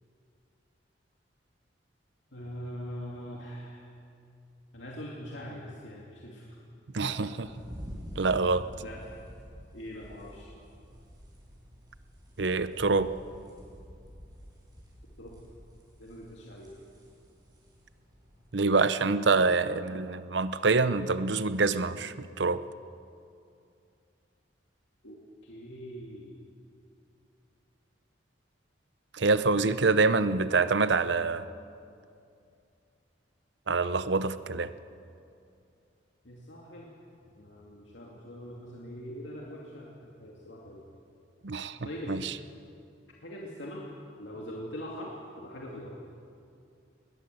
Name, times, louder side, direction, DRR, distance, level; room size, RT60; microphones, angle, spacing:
voice 1, 2.3-3.9 4.7-6.5 7.0-7.3 8.8-9.0 9.7-10.5 15.2-15.4 16.0-16.7 25.0-26.4 29.6-29.9 36.2-36.9 37.3-39.9 40.2-40.8 41.8-42.3 43.2-43.9 44.2-46.0, equal, 85° left, -3 dB, 2.5 m, -42 dB
voice 2, 6.9-7.5 8.2-8.7 12.4-13.1 18.5-22.6 29.1-31.5 33.7-34.7 41.4-42.3, right 3 dB, 70° right, 14 dB, 0.8 m, -26 dB
sound 1, 7.4-18.6, equal, 20° right, 5.5 m, -48 dB
20.5 x 19.5 x 7.8 m, 2.5 s
head